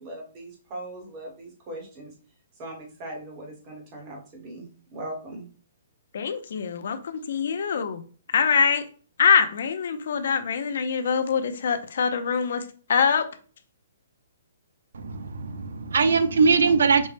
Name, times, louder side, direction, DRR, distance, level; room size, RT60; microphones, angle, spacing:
voice 1, 0.0-2.1 2.6-5.4, right 1 dB, 20° right, 0.9 m, -39 dB
voice 2, 6.1-8.0 8.3-8.8 9.2-13.2, left 6 dB, 50° left, 0.5 m, -24 dB
voice 3, 14.9-17.1, right 5 dB, 80° right, 0.5 m, -21 dB
5.2 x 2.1 x 3.2 m
hypercardioid pair, 180°, 0 cm